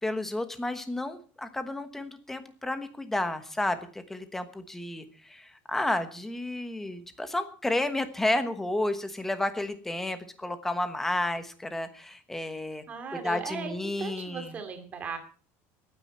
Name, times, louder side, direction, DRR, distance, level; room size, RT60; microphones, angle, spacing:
voice 1, 0.0-12.8 13.1-14.6, left 1 dB, 5° left, 10 dB, 1.1 m, -31 dB
voice 2, 12.9-15.2, right 5 dB, 25° right, 7 dB, 2.4 m, -37 dB
23.0 x 9.4 x 4.3 m, 0.41 s
cardioid pair, 180°, 6 cm